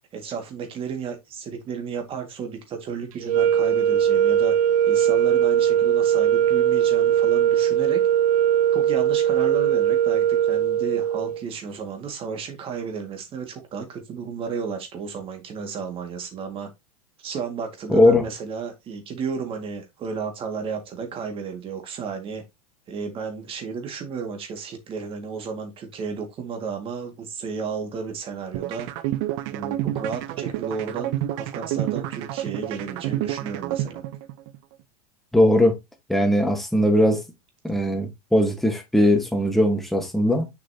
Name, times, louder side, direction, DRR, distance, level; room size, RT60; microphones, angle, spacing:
voice 1, 0.1-4.6 4.9-8.0 8.7-16.7 17.2-22.4 22.9-28.9 29.5-34.0, right 5 dB, 30° right, 2.0 m, -33 dB
sound 1, 3.2-11.4, right 10 dB, 65° right, 1.5 m, -20 dB
voice 2, 17.9-18.2 35.3-35.8 36.1-37.2 37.6-40.5, left 1 dB, ahead, 1.4 m, -19 dB
sound 2, 28.5-34.6, right 14 dB, 50° right, 0.8 m, -29 dB
6.7 x 6.0 x 2.8 m
supercardioid pair, 140°, 19 cm